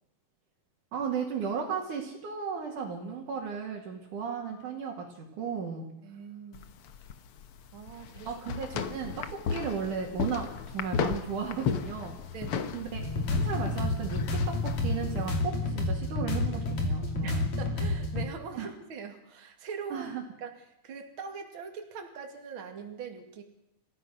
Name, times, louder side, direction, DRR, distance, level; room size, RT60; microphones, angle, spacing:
voice 1, 0.9-5.9 8.2-12.2 12.7-13.0 13.3-17.4 18.5-18.7 19.9-20.2, right 6 dB, 60° right, -2 dB, 3.8 m, -35 dB
voice 2, 6.0-6.7 7.7-8.3 12.3-12.7 17.2-20.1 20.4-20.5 20.8-23.4, right 6 dB, 40° right, 4 dB, 2.7 m, -42 dB
sound 1, 6.5-15.4, left 6 dB, 85° left, 1.2 m, -35 dB
sound 2, 12.9-18.2, left 2 dB, 50° left, 4.1 m, -30 dB
28.0 x 15.5 x 6.4 m, 0.83 s
omnidirectional pair, 4.2 m